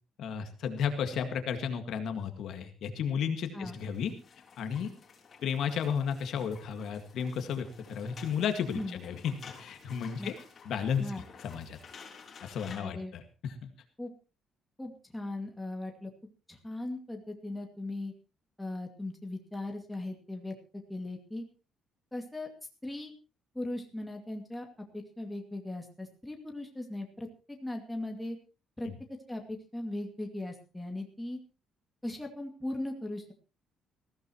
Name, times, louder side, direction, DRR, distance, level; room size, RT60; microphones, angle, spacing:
voice 1, 0.2-4.1 4.6-4.9 5.4-9.3 9.6-10.3 10.7-11.8 12.4-13.7, left 7 dB, 55° left, 7 dB, 1.9 m, -33 dB
sound 1, 3.7-12.8, left 5 dB, 30° left, 3.5 m, -52 dB
voice 2, 12.8-13.1 14.0-14.1 14.8-16.1 16.5-18.1 18.6-21.4 22.1-22.5 22.8-23.1 23.5-24.7 24.9-28.4 28.8-28.9 29.3-31.4 32.0-33.3, left 1 dB, 5° left, 2 dB, 2.3 m, -38 dB
20.5 x 15.5 x 3.1 m, 0.33 s
cardioid pair, 175°, 0 cm